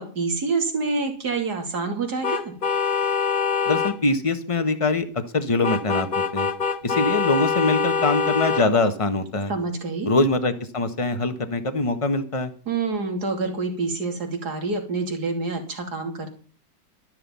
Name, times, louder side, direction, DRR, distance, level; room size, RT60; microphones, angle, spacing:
voice 1, 0.0-2.5 9.5-10.1 12.7-16.3, right 3 dB, 55° right, 4 dB, 3.4 m, -27 dB
sound 1, 2.2-4.0 5.6-8.7, left 5 dB, 40° left, 0.8 m, -24 dB
voice 2, 3.7-6.1 6.3-6.5 6.8-9.5 10.1-12.5, left 2 dB, 20° left, 9 dB, 1.3 m, -23 dB
13.0 x 11.0 x 5.5 m, 0.41 s
omnidirectional pair, 2.1 m